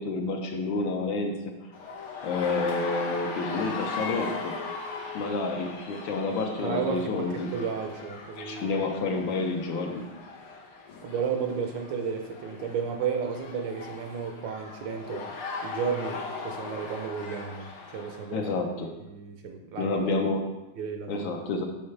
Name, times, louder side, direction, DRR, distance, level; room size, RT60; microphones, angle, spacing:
voice 1, 0.0-1.3 1.6-1.7 2.2-4.5 5.1-7.5 8.4-10.0 18.3-18.9 19.8-20.4 21.1-21.7, left 3 dB, 70° left, 3 dB, 1.5 m, -29 dB
sound 1, 1.7-18.3, left 4 dB, 90° left, 1.9 m, -39 dB
voice 2, 6.6-8.8 11.0-15.3 15.6-18.5 19.1-20.0 20.8-21.3, right 6 dB, 70° right, 4 dB, 1.3 m, -33 dB
7.2 x 5.7 x 3.2 m, 1.0 s
omnidirectional pair, 2.3 m